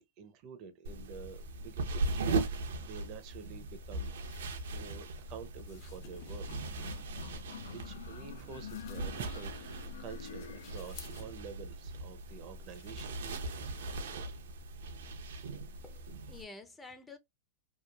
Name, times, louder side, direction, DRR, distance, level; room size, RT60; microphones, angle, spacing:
voice 1, 0.0-4.2 4.7-6.5 7.7-13.2, right 6 dB, 45° right, 0.6 m, -48 dB
sound 1, 0.8-16.4, right 3 dB, 80° right, 0.7 m, -39 dB
sound 2, 3.4-15.2, left 6 dB, 50° left, 0.9 m, -59 dB
sound 3, 6.5-11.3, left 7 dB, 80° left, 0.5 m, -48 dB
voice 2, 15.8-17.2, left 3 dB, 10° left, 0.5 m, -50 dB
3.0 x 2.3 x 2.3 m
hypercardioid pair, 125°, 0 cm